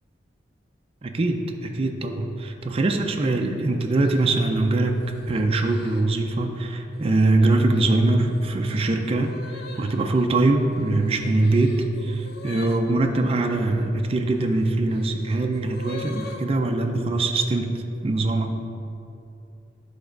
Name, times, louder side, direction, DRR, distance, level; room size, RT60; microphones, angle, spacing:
voice 1, 1.0-17.8 18.0-18.5, right 2 dB, 30° right, 3 dB, 0.4 m, -22 dB
sound 1, 3.0-3.4 4.0-6.4 6.9-7.3 7.7-13.6 14.4-16.5, left 3 dB, 55° left, 0.5 m, -44 dB
9.9 x 3.4 x 5.0 m, 2.7 s
head